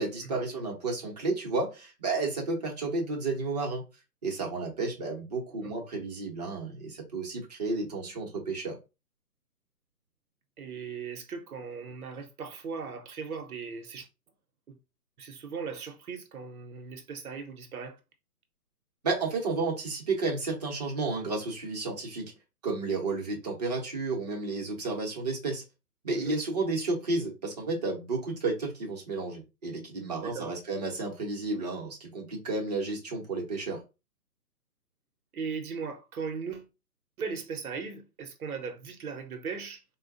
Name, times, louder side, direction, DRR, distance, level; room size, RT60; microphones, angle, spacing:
voice 1, 0.0-3.8 4.2-8.8 19.0-22.3 22.6-25.6 26.0-33.8, right 3 dB, 25° right, 0.7 m, -32 dB
voice 2, 10.6-14.1 14.7-14.8 15.2-18.0 26.2-26.3 30.2-30.5 35.3-36.7 37.2-39.8, right 5 dB, 65° right, 0.7 m, -38 dB
4.2 x 2.2 x 2.5 m
hypercardioid pair, 160°, 48 cm